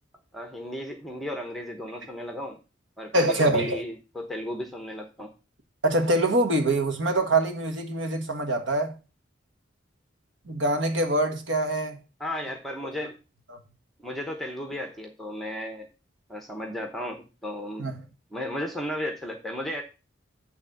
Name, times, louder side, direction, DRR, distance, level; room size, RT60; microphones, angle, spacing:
voice 1, 0.3-2.6 3.0-5.3 12.2-13.2 14.0-15.9 16.3-17.9 18.3-19.8, left 1 dB, ahead, 0.9 m, -34 dB
voice 2, 3.1-3.8 5.8-9.0 10.5-12.0 13.5-13.6 17.8-17.9, right 1 dB, 70° right, 1.5 m, -24 dB
8.9 x 3.5 x 6.6 m
head